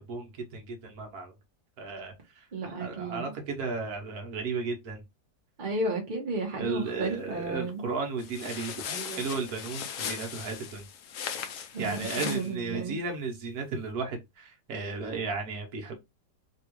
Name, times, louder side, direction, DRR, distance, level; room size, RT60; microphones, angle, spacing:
voice 1, 0.0-1.3 1.8-2.1 2.6-5.0 6.5-10.8 11.8-16.0, right 4 dB, 65° right, 1.4 m, -34 dB
voice 2, 2.5-3.3 5.6-7.9 11.7-13.0, right 2 dB, 35° right, 0.9 m, -33 dB
sound 1, 8.2-12.5, left 7 dB, 65° left, 0.8 m, -38 dB
3.4 x 2.4 x 3.0 m
omnidirectional pair, 1.8 m